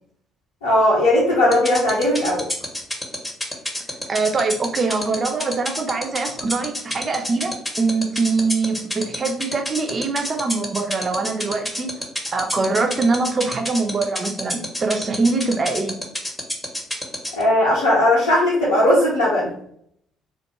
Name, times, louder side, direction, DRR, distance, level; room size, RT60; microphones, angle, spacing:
voice 1, 0.6-2.4 17.3-19.5, left 1 dB, 80° left, -8 dB, 0.7 m, -17 dB
sound 1, 1.5-17.4, left 1 dB, 10° left, 0.7 m, -27 dB
voice 2, 4.1-11.9 12.3-16.0, right 3 dB, 35° right, 5 dB, 0.4 m, -23 dB
2.4 x 2.3 x 2.9 m, 0.67 s
figure-of-eight pair, 50°, 0 cm